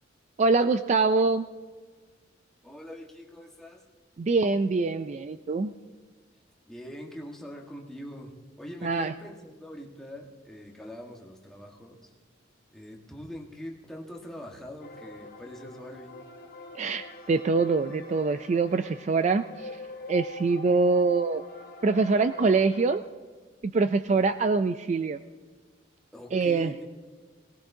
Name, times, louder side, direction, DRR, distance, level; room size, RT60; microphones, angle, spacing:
voice 1, 0.4-1.5 4.2-5.7 8.8-9.1 16.8-19.7 20.1-21.4 21.8-23.0 23.6-25.2 26.3-26.7, right 4 dB, 35° right, 10 dB, 0.3 m, -24 dB
voice 2, 2.6-3.8 6.7-8.3 8.6-12.1 12.7-16.1 24.1-24.2 26.1-26.8, equal, ahead, -1 dB, 1.4 m, -43 dB
sound 1, 14.8-23.0, left 2 dB, 50° left, 1.2 m, -45 dB
18.5 x 18.5 x 2.7 m, 1.4 s
head